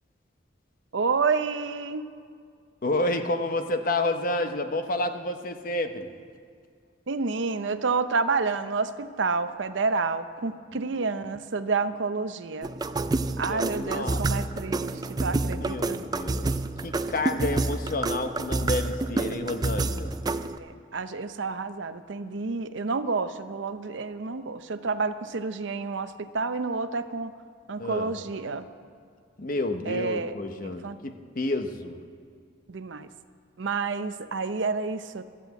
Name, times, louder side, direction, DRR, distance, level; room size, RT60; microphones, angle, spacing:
voice 1, 0.9-2.1 7.1-12.7 13.4-16.0 20.6-27.4 27.7-28.7 29.9-30.3 30.6-31.0 32.7-33.1 33.6-35.3, right 4 dB, 75° right, 11 dB, 0.6 m, -29 dB
voice 2, 2.8-6.1 13.5-14.2 15.5-16.5 16.8-20.1 27.8-28.1 29.4-32.0, left 2 dB, 45° left, 7 dB, 0.9 m, -30 dB
sound 1, 12.6-20.6, right 2 dB, 20° right, 0.4 m, -29 dB
13.0 x 11.0 x 8.2 m, 2.2 s
head